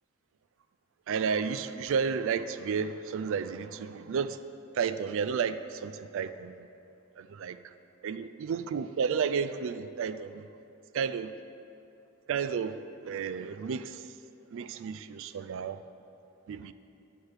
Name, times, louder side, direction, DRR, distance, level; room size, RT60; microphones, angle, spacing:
voice 1, 1.1-4.4 4.8-6.6 7.2-7.6 8.0-10.4 10.9-11.3 12.3-12.8 13.0-14.1 14.5-15.8 16.5-16.7, right 6 dB, 60° right, 12 dB, 0.3 m, -32 dB
8.9 x 6.5 x 4.8 m, 2.8 s
head